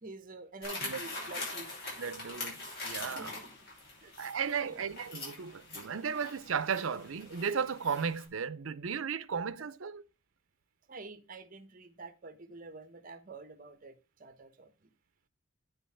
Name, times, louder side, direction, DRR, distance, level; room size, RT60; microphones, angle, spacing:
voice 1, 0.0-1.7 3.1-3.3 4.0-4.1 4.6-4.8 9.6-9.7 10.9-13.9 14.2-14.7, right 3 dB, 40° right, 1.1 m, -47 dB
sound 1, 0.6-8.2, left 2 dB, 50° left, 5.7 m, -43 dB
voice 2, 2.0-3.3 4.2-10.0, right 6 dB, 80° right, 0.6 m, -35 dB
9.3 x 5.5 x 5.6 m
head